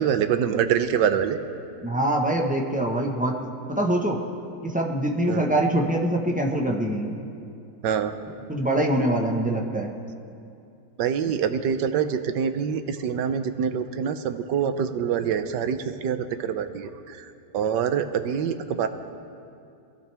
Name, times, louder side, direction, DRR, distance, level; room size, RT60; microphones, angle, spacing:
voice 1, 0.0-1.4 5.3-5.4 7.8-8.2 11.0-18.9, right 8 dB, 75° right, 9 dB, 1.4 m, -25 dB
voice 2, 1.8-3.4 3.7-4.2 4.6-7.2 8.5-9.9, right 1 dB, 5° right, 0 dB, 0.9 m, -24 dB
22.5 x 16.0 x 3.4 m, 2.5 s
omnidirectional pair, 1.9 m